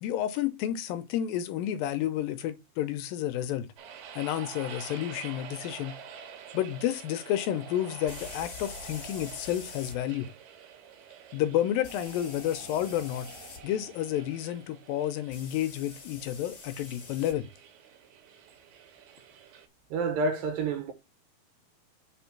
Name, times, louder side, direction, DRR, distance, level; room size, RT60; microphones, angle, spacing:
voice 1, 0.0-3.7 4.2-6.0 6.5-10.3 11.3-13.3 13.6-17.5, left 11 dB, 80° left, 2.2 m, -30 dB
sound 1, 3.8-19.7, right 8 dB, 90° right, 2.9 m, -48 dB
sound 2, 4.6-4.7 8.1-10.0 11.8-13.6 15.3-17.4, left 5 dB, 55° left, 1.3 m, -45 dB
sound 3, 11.2-15.8, right 2 dB, 50° right, 1.2 m, -51 dB
voice 2, 19.9-20.9, right 3 dB, 75° right, 2.4 m, -28 dB
5.2 x 4.4 x 5.7 m
omnidirectional pair, 4.3 m